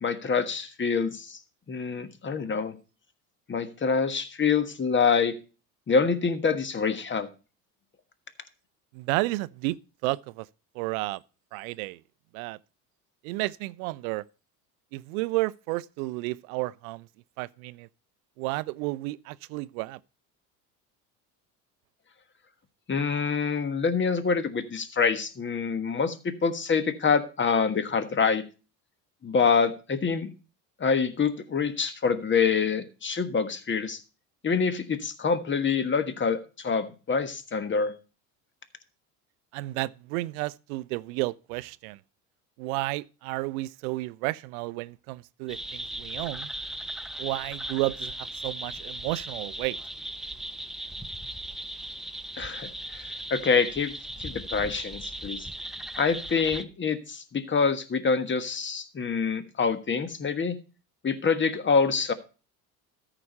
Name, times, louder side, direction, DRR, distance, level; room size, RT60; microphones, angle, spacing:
voice 1, 0.0-1.4 1.7-2.8 3.5-5.4 5.9-7.3 22.9-28.4 29.2-30.3 30.8-34.0 34.4-37.9 52.4-53.9 54.2-55.5 56.0-60.6 61.0-62.1, left 5 dB, 25° left, 1.4 m, -26 dB
voice 2, 8.9-9.8 10.0-10.5 10.8-11.2 11.5-12.0 12.3-12.6 13.2-14.2 14.9-17.0 17.4-17.9 18.4-20.0 39.5-42.0 42.6-46.5 47.2-49.8, right 21 dB, 65° right, 0.5 m, -32 dB
sound 1, 45.5-56.6, right 1 dB, ahead, 0.6 m, -38 dB
13.5 x 5.0 x 5.4 m
hypercardioid pair, 75°, 46 cm